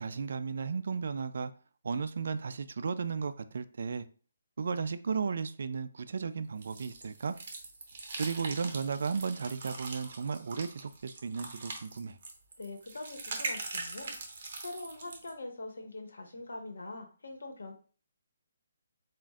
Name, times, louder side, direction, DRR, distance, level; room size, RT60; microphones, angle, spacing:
voice 1, 0.0-1.5 1.8-4.0 4.6-7.4 8.2-12.2, right 5 dB, 60° right, 0.4 m, -34 dB
sound 1, 6.6-15.3, right 3 dB, 40° right, 1.0 m, -42 dB
voice 2, 12.6-14.1 14.6-17.7, left 2 dB, 85° left, 1.2 m, -43 dB
7.4 x 2.5 x 2.4 m
hypercardioid pair, 170°, 0 cm